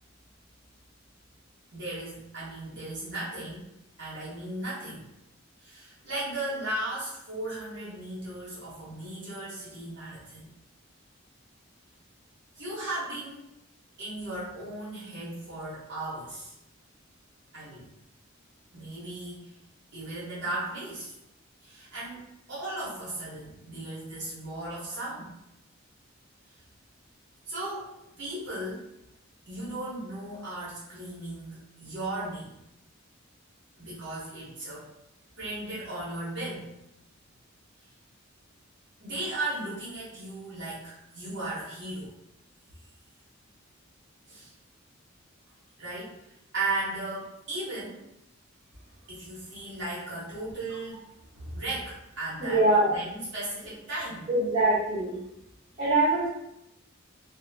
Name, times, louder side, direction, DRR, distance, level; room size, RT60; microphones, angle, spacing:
voice 1, 1.7-3.7 4.0-5.0 5.6-10.5 12.6-13.4 14.0-16.5 17.5-17.9 18.7-19.5 19.9-21.2 21.6-25.3 27.5-29.0 29.5-32.6 33.8-34.9 35.4-36.7 39.0-42.2 44.3-44.5 45.8-46.1 46.5-48.0 49.1-51.0 51.3-52.6 52.9-54.3, right 2 dB, 55° right, -9 dB, 1.0 m, -36 dB
voice 2, 52.4-53.0 54.3-55.2 55.8-56.3, right 2 dB, 30° right, -11 dB, 1.0 m, -23 dB
2.7 x 2.0 x 2.6 m, 0.84 s
head